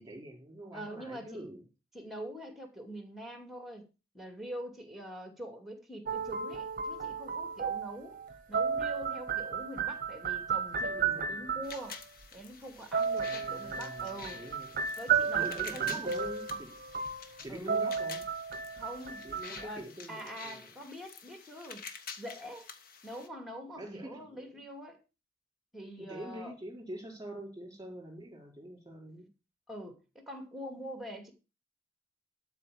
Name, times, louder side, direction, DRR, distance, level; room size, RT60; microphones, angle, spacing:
voice 1, 0.0-1.6 10.8-11.6 13.2-14.8 15.3-16.8 17.4-18.2 19.2-20.8 23.8-24.6 26.0-29.3, right 1 dB, 20° right, 3.9 m, -45 dB
voice 2, 0.7-1.4 1.9-3.8 4.1-8.2 8.5-12.0 12.3-14.4 15.0-16.1 17.5-17.9 18.7-19.3 19.6-21.8 22.2-22.7 23.0-25.0 25.7-26.5 29.7-31.3, right 1 dB, ahead, 2.4 m, -44 dB
sound 1, 6.1-11.9 12.9-19.8, right 6 dB, 50° right, 0.8 m, -33 dB
sound 2, 11.6-23.3, left 5 dB, 55° left, 1.5 m, -49 dB
12.5 x 4.7 x 7.0 m
head